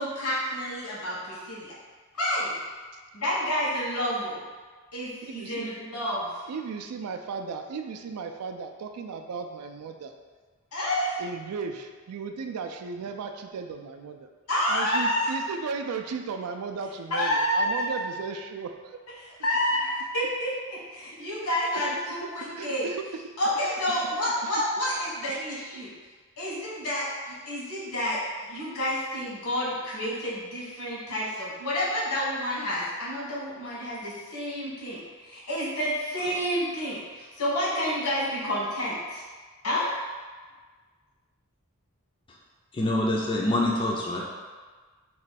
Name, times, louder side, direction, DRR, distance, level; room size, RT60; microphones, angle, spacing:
voice 1, 0.0-1.7 2.2-2.6 3.1-4.4 4.9-6.4 10.7-11.2 14.5-15.3 17.1-18.0 19.2-22.8 23.4-25.9 26.4-39.2 39.6-39.9, equal, 80° left, -7 dB, 1.3 m, -29 dB
voice 2, 5.2-5.7 6.5-10.1 11.2-14.3 14.7-19.0 21.7-22.0 22.5-23.0 23.9-24.5 25.3-25.4, right 5 dB, 80° right, 5 dB, 0.3 m, -36 dB
voice 3, 42.7-44.2, left 1 dB, 20° left, -3 dB, 0.3 m, -25 dB
3.1 x 2.2 x 4.1 m, 1.4 s
head